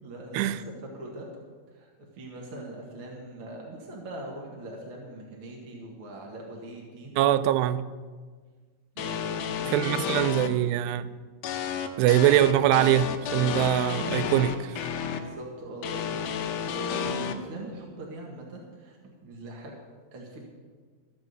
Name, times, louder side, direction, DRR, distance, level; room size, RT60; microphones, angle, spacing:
voice 1, 0.0-1.3 1.7-1.9 2.2-7.2 8.9-10.3 11.0-11.1 15.0-19.7 20.1-20.4, right 1 dB, 50° right, 1.7 m, -42 dB
voice 2, 7.2-7.8 9.7-11.1 12.0-14.8, right 12 dB, 90° right, 2.7 m, -23 dB
sound 1, 9.0-10.5 11.4-15.2 15.8-17.3, left 7 dB, 75° left, 1.9 m, -31 dB
14.0 x 7.1 x 7.9 m
omnidirectional pair, 4.7 m